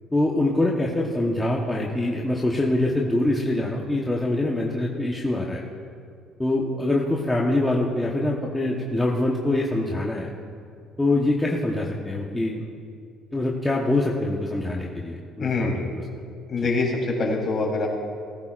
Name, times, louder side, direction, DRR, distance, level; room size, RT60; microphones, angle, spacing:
voice 1, 0.1-5.6 6.4-10.3 11.0-12.6 13.3-15.9, left 2 dB, 10° left, -3 dB, 1.1 m, -24 dB
voice 2, 15.4-15.8 16.5-17.9, left 3 dB, 40° left, -2 dB, 3.6 m, -24 dB
18.0 x 14.5 x 2.5 m, 2.3 s
cardioid pair, 125°, 0 cm